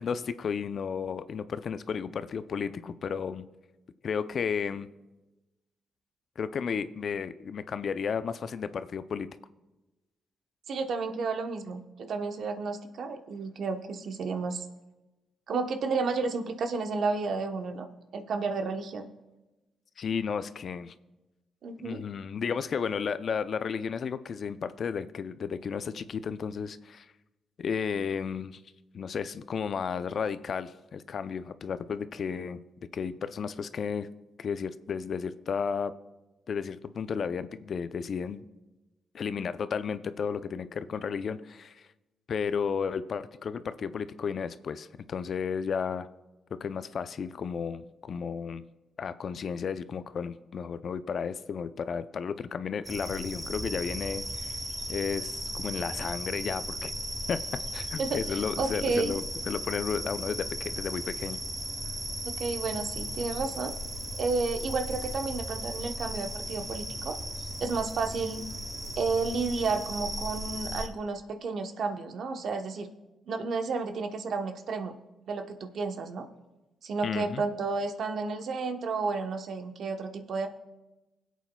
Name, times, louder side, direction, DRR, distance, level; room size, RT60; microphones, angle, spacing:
voice 1, 0.0-3.5 4.0-4.9 6.4-9.3 20.0-20.9 21.8-27.1 27.6-28.6 28.9-32.6 32.9-34.1 34.4-35.9 36.5-38.4 39.1-41.9 42.3-46.1 46.6-48.6 49.0-54.5 54.9-56.9 57.3-57.4 57.7-61.4 77.0-77.4, left 6 dB, 60° left, 12 dB, 0.5 m, -33 dB
voice 2, 10.7-14.6 15.5-17.9 18.1-19.1 21.6-22.0 58.0-59.1 62.2-63.7 64.2-67.2 67.6-68.4 69.0-72.9 73.3-75.0 75.3-76.3 76.8-80.5, right 4 dB, 70° right, 6 dB, 0.9 m, -31 dB
sound 1, 52.8-70.9, right 1 dB, 25° right, 2.7 m, -36 dB
24.0 x 8.2 x 2.3 m, 1.0 s
supercardioid pair, 55°, 0 cm